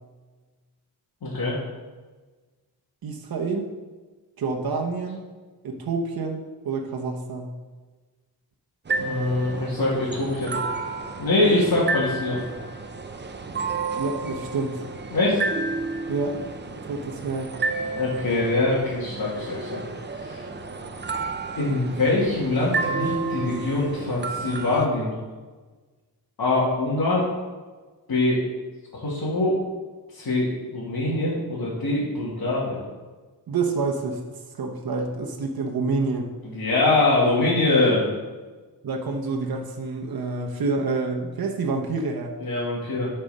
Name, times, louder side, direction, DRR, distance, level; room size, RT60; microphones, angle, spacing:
voice 1, 1.2-1.6 9.0-10.5 11.2-12.4 15.1-15.4 17.8-19.8 20.2-20.4 21.6-25.1 26.4-27.3 28.1-28.4 28.9-29.5 30.1-32.8 36.4-38.1 42.4-43.1, left 2 dB, 70° left, -8 dB, 1.9 m, -23 dB
voice 2, 3.0-3.7 4.4-5.2 5.6-7.5 14.0-14.8 16.1-17.5 33.5-34.2 34.5-36.3 38.8-42.3, right 3 dB, 65° right, 1 dB, 0.9 m, -28 dB
sound 1, 8.9-24.9, right 3 dB, 30° right, 0.5 m, -31 dB
8.7 x 4.4 x 5.3 m, 1.3 s
wide cardioid pair, 175°, 38 cm